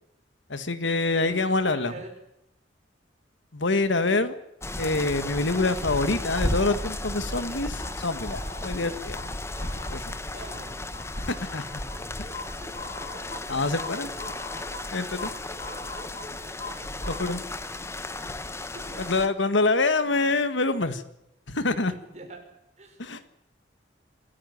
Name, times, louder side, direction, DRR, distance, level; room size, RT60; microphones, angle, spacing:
voice 1, 0.5-1.9 3.5-4.3 4.8-9.2 9.9-10.2 11.2-11.8 13.5-14.1 14.9-15.3 17.1-17.4 19.0-21.0 21.5-21.9 23.0-23.2, left 3 dB, 80° left, 12 dB, 1.8 m, -26 dB
voice 2, 1.1-2.1 10.3-10.8 12.6-12.8 13.2-13.4 16.3-17.0 18.6-19.1 21.8-22.5 22.8-23.0, right 2 dB, 35° right, 2 dB, 6.0 m, -44 dB
sound 1, 4.6-19.3, left 1 dB, 15° left, 1.0 m, -34 dB
sound 2, 7.3-17.3, left 2 dB, 30° left, 4.3 m, -42 dB
26.0 x 15.0 x 9.4 m, 0.83 s
head